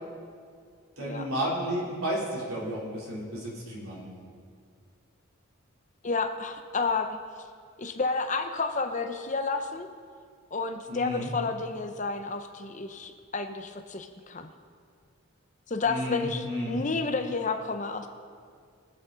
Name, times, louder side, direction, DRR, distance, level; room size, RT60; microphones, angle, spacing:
voice 1, 1.0-4.0 10.9-11.3 15.8-16.8, equal, 80° right, -4 dB, 3.5 m, -32 dB
voice 2, 6.0-7.2 7.8-9.9 10.5-14.5 15.7-18.1, left 4 dB, 35° left, 7 dB, 0.7 m, -31 dB
23.0 x 8.2 x 4.0 m, 2.1 s
head